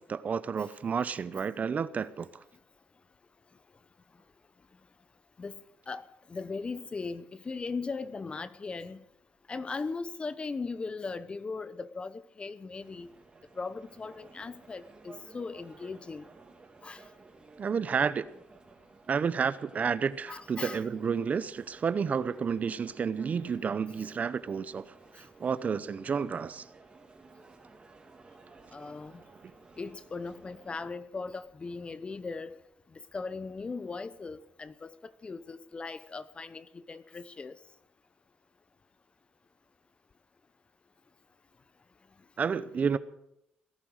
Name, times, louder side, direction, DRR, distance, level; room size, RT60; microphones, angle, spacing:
voice 1, 0.0-2.4 17.6-18.3 19.1-26.6 42.4-43.0, right 6 dB, 40° right, 0.7 m, -31 dB
voice 2, 5.9-9.0 9.5-13.1 13.6-16.3 16.8-17.0 20.3-20.8 23.3-23.4 28.7-29.2 29.8-32.6 33.1-37.6, left 4 dB, 30° left, 0.8 m, -38 dB
sound 1, 12.8-30.9, right 3 dB, 25° right, 2.7 m, -55 dB
18.0 x 11.0 x 6.5 m
cardioid pair, 100°, 4 cm